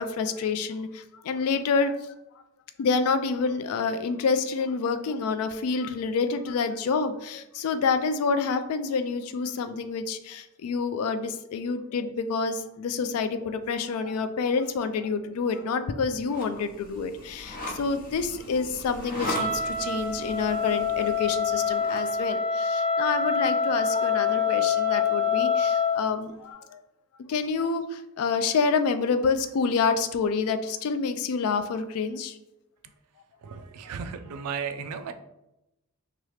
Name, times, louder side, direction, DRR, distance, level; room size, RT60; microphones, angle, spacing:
voice 1, 0.0-2.1 2.8-26.8 27.3-32.4, left 5 dB, 70° left, 10 dB, 0.3 m, -28 dB
sound 1, 16.2-22.1, left 1 dB, 40° left, 0.7 m, -39 dB
Wind instrument woodwind instrument, 19.2-26.0, left 5 dB, 10° right, 0.6 m, -26 dB
voice 2, 33.4-35.1, right 6 dB, 90° right, 10 dB, 0.3 m, -35 dB
2.9 x 2.4 x 3.1 m, 0.90 s
head